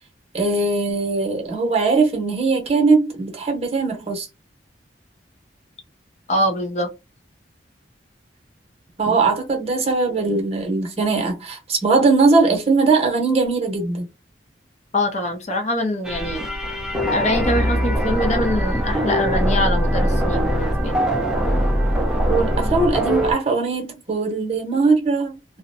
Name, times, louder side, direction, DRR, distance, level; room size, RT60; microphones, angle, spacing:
voice 1, 0.3-4.3 9.0-14.1 22.2-25.4, right 3 dB, 35° right, 0.9 m, -20 dB
voice 2, 6.3-6.9 9.1-9.2 14.9-16.5 17.1-21.0, left 1 dB, 40° left, 0.6 m, -23 dB
sound 1, 16.0-23.3, equal, 5° right, 0.5 m, -21 dB
2.6 x 2.1 x 2.6 m
head